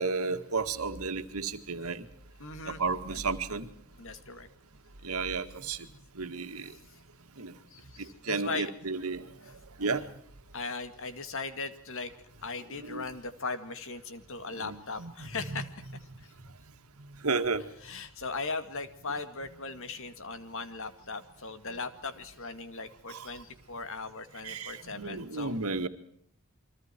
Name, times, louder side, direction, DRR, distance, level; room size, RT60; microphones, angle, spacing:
voice 1, 0.0-2.1 2.7-3.7 5.0-5.9 6.1-6.8 7.4-7.6 8.0-10.1 12.8-13.1 14.5-15.6 17.0-17.7 23.1-23.3 24.4-25.9, right 4 dB, 80° right, 8 dB, 2.0 m, -33 dB
voice 2, 2.4-3.2 4.0-4.5 7.7-8.7 9.4-9.5 10.5-12.1 12.4-15.7 16.2-16.3 17.8-25.6, left 4 dB, 65° left, 10 dB, 2.2 m, -38 dB
29.5 x 23.5 x 4.5 m, 0.65 s
head